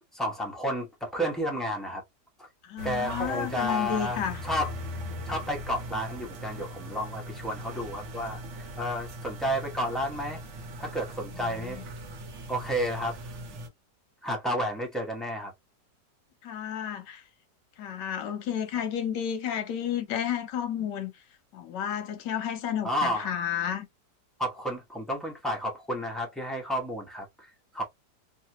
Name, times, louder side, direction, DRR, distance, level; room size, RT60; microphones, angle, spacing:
voice 1, 0.1-2.0 2.4-2.5 2.8-4.7 5.3-8.4 8.8-10.4 10.8-11.8 12.5-13.2 14.2-15.5 22.8-23.4 24.4-27.8, equal, ahead, 0.4 m, -31 dB
voice 2, 2.6-4.4 11.4-11.8 16.4-17.2 17.8-21.1 21.5-23.9, left 9 dB, 85° left, 1.4 m, -32 dB
sound 1, 2.8-13.7, equal, 55° right, 1.0 m, -40 dB
3.2 x 2.4 x 2.8 m
omnidirectional pair, 1.8 m